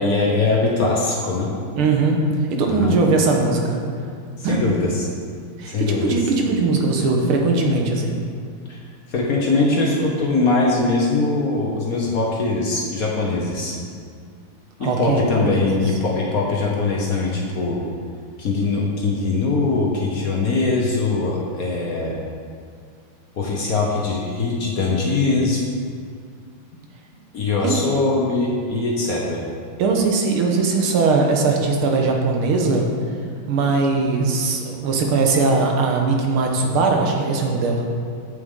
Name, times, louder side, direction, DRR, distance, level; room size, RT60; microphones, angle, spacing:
voice 1, 0.0-1.5 2.7-3.0 4.4-5.1 5.7-6.2 8.7-8.8 9.1-13.8 14.8-17.8 18.4-22.2 23.4-25.6 27.3-29.4, left 3 dB, 55° left, -3 dB, 1.1 m, -21 dB
voice 2, 1.8-2.2 2.5-3.8 4.4-4.6 5.6-8.2 14.8-15.7 27.6-27.8 29.8-32.9 33.5-37.9, right 3 dB, 85° right, 1 dB, 1.9 m, -20 dB
8.1 x 7.9 x 3.7 m, 2.2 s
omnidirectional pair, 2.3 m